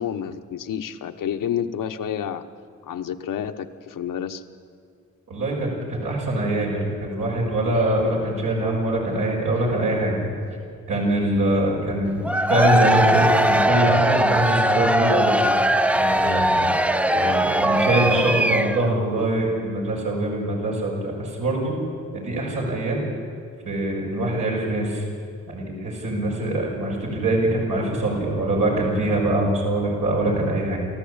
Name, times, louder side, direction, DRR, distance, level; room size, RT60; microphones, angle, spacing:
voice 1, 0.0-2.4 2.8-4.4, left 9 dB, 85° left, 8 dB, 1.1 m, -29 dB
voice 2, 5.3-10.2 10.9-12.2 12.5-15.6 15.9-16.7 17.1-21.7 22.1-23.0 23.6-25.0 25.5-30.8, right 1 dB, 85° right, -4 dB, 6.4 m, -23 dB
Cheering / Crowd, 12.2-19.0, right 1 dB, 5° right, 0.5 m, -20 dB
29.0 x 14.0 x 8.7 m, 2.3 s
cardioid pair, 80°, 32 cm